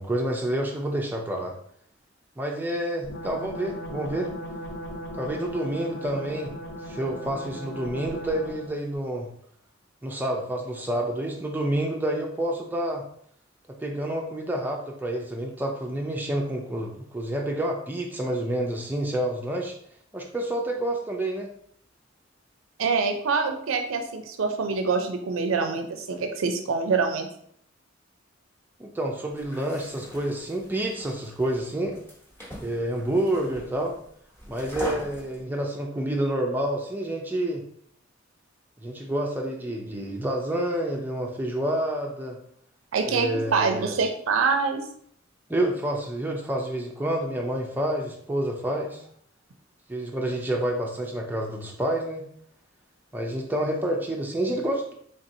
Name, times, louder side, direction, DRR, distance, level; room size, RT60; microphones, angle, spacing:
voice 1, 0.0-1.5 2.4-4.3 5.2-6.5 6.8-9.3 10.0-13.0 13.8-19.7 20.1-21.5 28.8-32.0 32.6-34.0 34.5-37.6 38.8-42.4 43.1-43.9 45.5-49.0 49.9-52.2 53.1-54.9, right 1 dB, 10° right, 1 dB, 0.4 m, -28 dB
sound 1, 3.0-8.8, equal, 70° left, 1.4 m, -37 dB
voice 2, 22.8-27.3 42.9-44.9, right 4 dB, 85° right, 6 dB, 0.5 m, -25 dB
sound 2, 29.3-35.4, equal, 10° left, 0.9 m, -41 dB
4.1 x 3.4 x 2.6 m, 0.65 s
head